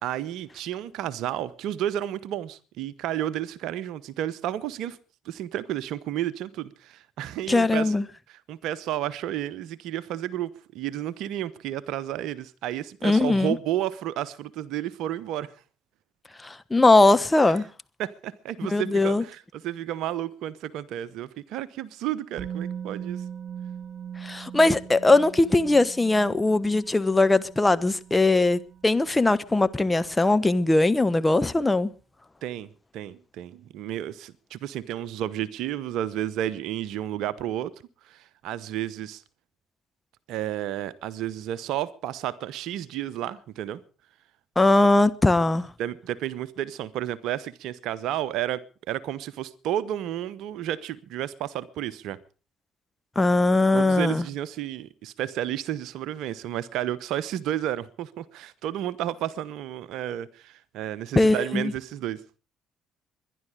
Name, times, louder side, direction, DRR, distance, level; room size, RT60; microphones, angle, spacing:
voice 1, 0.0-5.0 5.2-7.9 8.3-15.5 18.0-23.2 32.4-32.7 32.9-37.7 38.0-39.2 40.3-43.8 45.8-52.2 53.7-62.2, right 12 dB, 65° right, 1.0 m, -32 dB
voice 2, 7.5-8.0 13.0-13.6 16.4-17.6 18.7-19.2 24.2-31.9 44.6-45.7 53.2-54.2 61.2-61.7, left 2 dB, 15° left, 1.1 m, -20 dB
Musical instrument, 22.4-30.3 30.6-30.7, right 8 dB, 45° right, 3.1 m, -40 dB
22.0 x 11.0 x 4.9 m
hypercardioid pair, 50°, 0 cm